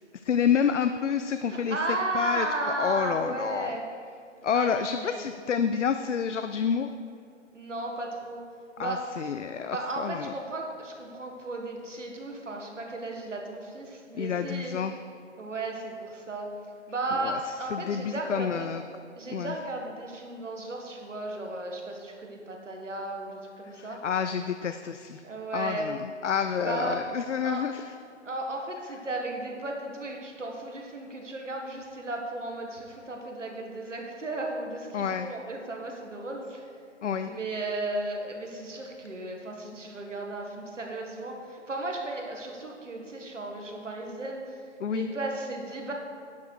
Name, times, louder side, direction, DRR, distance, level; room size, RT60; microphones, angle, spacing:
voice 1, 0.2-1.8 2.1-3.7 4.4-6.9 8.8-10.3 14.1-15.0 17.2-18.8 19.3-19.6 23.7-25.2 25.5-27.9 34.9-35.3 37.0-37.3 44.8-45.1, left 7 dB, 75° left, 9 dB, 0.5 m, -29 dB
voice 2, 1.5-3.8 4.5-5.2 7.5-8.5 8.8-9.1 9.7-14.8 15.4-16.6 16.9-18.7 19.1-24.0 25.2-25.9 26.6-27.0 27.4-27.6 28.2-36.7 37.2-44.6 44.9-45.9, right 2 dB, 80° right, 1 dB, 1.9 m, -35 dB
11.0 x 6.5 x 4.7 m, 2.3 s
figure-of-eight pair, 140°, 36 cm